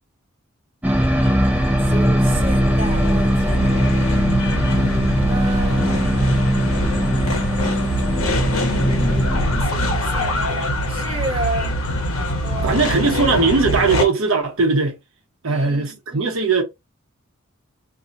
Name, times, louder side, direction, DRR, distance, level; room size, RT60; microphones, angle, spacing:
sound 1, 0.8-9.6, equal, 5° right, 0.5 m, -20 dB
sound 2, 0.9-14.0, left 1 dB, 75° left, 1.0 m, -24 dB
voice 1, 1.8-3.8 5.3-7.0 9.6-11.7 12.4-12.9 15.5-16.5, right 2 dB, 25° right, 1.0 m, -32 dB
voice 2, 12.6-15.0 15.4-16.6, right 4 dB, 75° right, 0.8 m, -19 dB
2.7 x 2.7 x 3.8 m
head